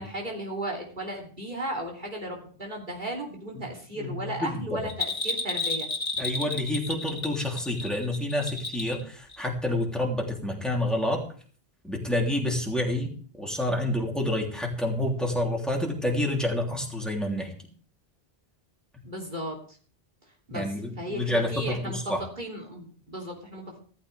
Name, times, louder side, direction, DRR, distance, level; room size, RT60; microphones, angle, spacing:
voice 1, 0.0-5.9 19.0-19.6 20.5-23.8, right 1 dB, 50° right, -1 dB, 3.3 m, -35 dB
voice 2, 3.9-4.8 6.2-11.2 11.8-13.1 13.4-17.5 20.5-22.2, left 1 dB, ahead, -1 dB, 3.1 m, -28 dB
Bell, 4.9-9.0 9.3-9.4, left 3 dB, 40° left, 2.6 m, -31 dB
15.5 x 14.0 x 3.4 m, 0.44 s
omnidirectional pair, 1.1 m